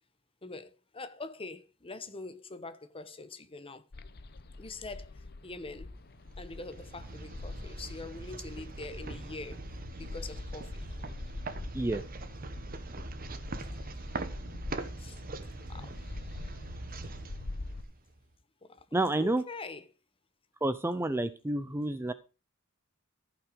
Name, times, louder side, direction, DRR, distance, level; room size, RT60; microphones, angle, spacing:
voice 1, 0.4-3.9 4.6-5.9 6.4-9.6 10.0-10.9 15.0-15.2 15.7-16.0 18.6-18.9 19.2-19.9, left 3 dB, 25° left, 1.0 m, -44 dB
sound 1, 3.9-17.8, left 2 dB, 50° left, 0.8 m, -45 dB
sound 2, 6.2-18.2, right 2 dB, 45° right, 1.1 m, -42 dB
voice 2, 18.9-19.4 20.6-22.1, right 2 dB, 10° right, 0.5 m, -29 dB
14.5 x 5.9 x 5.1 m
head